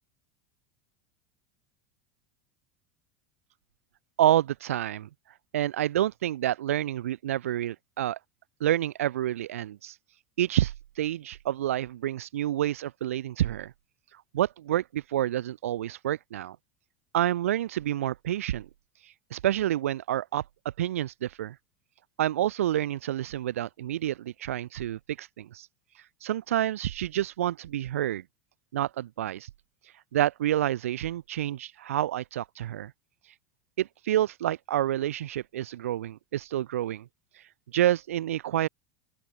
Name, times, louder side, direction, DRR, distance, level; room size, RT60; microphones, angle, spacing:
voice 1, 4.2-5.1 5.5-8.2 8.6-9.9 10.4-13.7 14.3-16.6 17.1-18.7 19.3-20.4 20.8-21.6 22.2-25.7 26.2-28.2 28.7-29.5 30.1-32.9 33.8-37.1 37.7-38.7, right 12 dB, 70° right, 7.2 m, -28 dB
open air
figure-of-eight pair, 80°, 8 cm